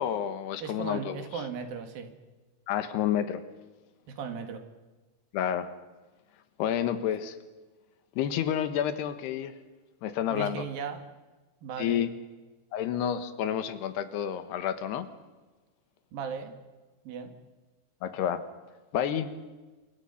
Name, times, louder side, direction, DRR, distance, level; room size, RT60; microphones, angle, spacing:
voice 1, 0.0-1.2 2.7-3.4 5.3-5.7 6.6-7.4 8.2-9.5 10.0-10.7 11.8-12.1 12.7-15.1 18.0-18.4 18.9-19.3, left 9 dB, 80° left, 11 dB, 3.3 m, -29 dB
voice 2, 0.6-2.1 4.1-4.7 10.3-11.0 11.6-12.0 16.1-16.6 17.1-17.3, right 6 dB, 65° right, 7 dB, 3.6 m, -37 dB
27.0 x 23.5 x 5.7 m, 1.2 s
omnidirectional pair, 4.7 m